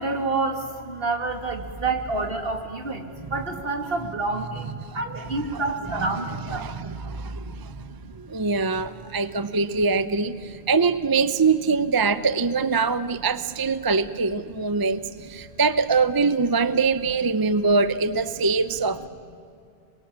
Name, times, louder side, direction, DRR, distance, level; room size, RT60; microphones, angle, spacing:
voice 1, 0.0-8.1 9.4-9.6 10.5-10.6 14.4-14.7 17.0-17.1 18.3-18.4 19.0-19.1, right 3 dB, 60° right, 5 dB, 2.5 m, -29 dB
voice 2, 5.9-7.8 8.1-15.0 15.3-19.1, right 4 dB, 25° right, 13 dB, 0.6 m, -23 dB
27.0 x 22.5 x 8.6 m, 2.5 s
omnidirectional pair, 1.1 m